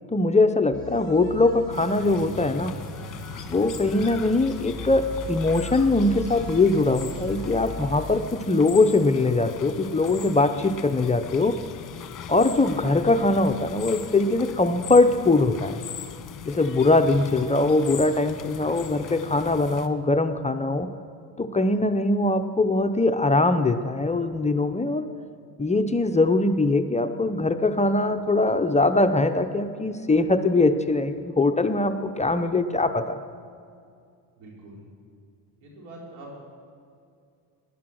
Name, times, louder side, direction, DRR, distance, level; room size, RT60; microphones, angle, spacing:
voice 1, 0.1-2.7 3.5-11.5 12.3-15.8 16.5-20.9 21.4-25.1 25.6-33.2, left 2 dB, 15° left, 7 dB, 0.6 m, -22 dB
sound 1, 0.7-8.2, left 1 dB, 45° right, 4.8 m, -39 dB
sound 2, 1.7-19.9, left 8 dB, 40° left, 1.3 m, -40 dB
voice 2, 34.4-34.8 35.6-36.4, right 2 dB, 90° right, -2 dB, 4.1 m, -43 dB
16.5 x 10.5 x 6.3 m, 2.4 s
supercardioid pair, 90°, 46 cm